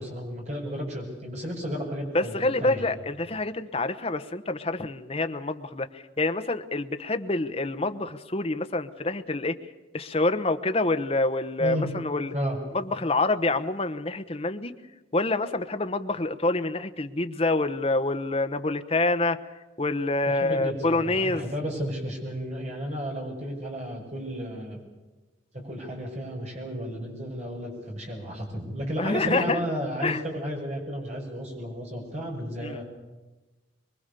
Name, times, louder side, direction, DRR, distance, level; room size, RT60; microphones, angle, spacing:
voice 1, 0.0-2.9 11.6-11.9 12.3-12.6 20.3-24.8 25.5-32.8, equal, 35° right, 0 dB, 6.2 m, -33 dB
voice 2, 2.1-9.6 9.9-12.3 12.7-14.8 15.1-19.4 19.8-21.5 29.0-29.6 30.0-30.2 32.6-32.8, left 2 dB, 30° left, 8 dB, 1.0 m, -27 dB
24.0 x 23.0 x 6.9 m, 1.2 s
head